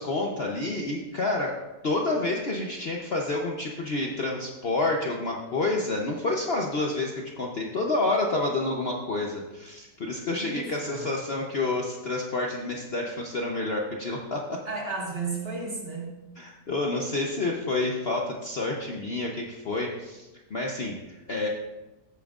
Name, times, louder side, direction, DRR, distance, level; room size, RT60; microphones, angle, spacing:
voice 1, 0.0-14.6 16.4-21.5, left 2 dB, 45° left, 0 dB, 0.9 m, -29 dB
voice 2, 10.4-11.1 14.7-16.1, right 3 dB, 35° right, -2 dB, 1.9 m, -33 dB
14.5 x 8.9 x 2.4 m, 1.1 s
omnidirectional pair, 1.8 m